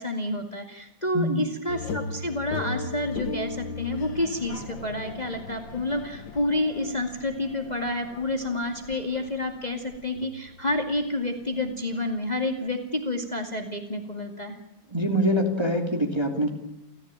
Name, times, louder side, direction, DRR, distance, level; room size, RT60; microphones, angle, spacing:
voice 1, 0.0-14.6, left 1 dB, 20° left, 4 dB, 2.4 m, -29 dB
sound 1, 1.7-12.7, left 3 dB, 70° left, 2.6 m, -38 dB
voice 2, 14.9-16.5, equal, 15° right, 2 dB, 2.9 m, -24 dB
30.0 x 15.0 x 8.9 m, 0.94 s
omnidirectional pair, 2.1 m